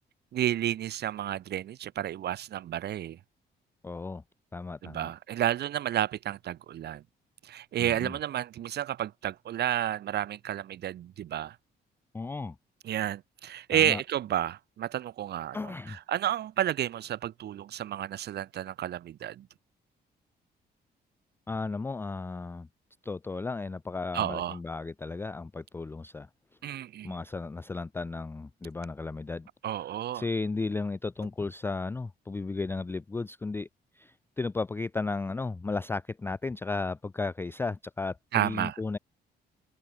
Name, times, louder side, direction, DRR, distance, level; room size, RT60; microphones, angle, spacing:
voice 1, 0.3-3.2 4.8-7.0 7.4-11.6 12.8-19.5 24.1-24.6 26.6-27.2 29.6-30.3 38.3-38.8, right 11 dB, 70° right, 1.0 m, -31 dB
voice 2, 3.8-4.2 4.5-5.1 7.8-8.1 12.1-12.6 13.7-14.0 15.5-16.0 21.5-22.7 23.0-26.3 26.7-26.8 27.0-29.5 30.1-33.7 34.0-39.0, left 3 dB, 15° left, 0.3 m, -34 dB
cardioid pair, 115°, 18 cm